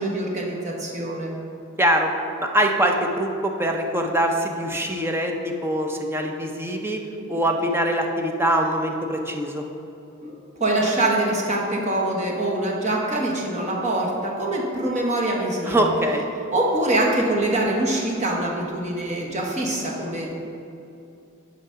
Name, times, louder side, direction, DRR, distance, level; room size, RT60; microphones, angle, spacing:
voice 1, 0.0-1.3 10.2-10.3 10.6-15.9 16.5-20.3, right 1 dB, 35° right, -2 dB, 1.2 m, -24 dB
voice 2, 1.8-2.1 2.5-7.0 7.3-9.6 15.6-16.2, right 1 dB, 10° right, 2 dB, 0.6 m, -23 dB
10.0 x 4.0 x 5.6 m, 2.7 s
head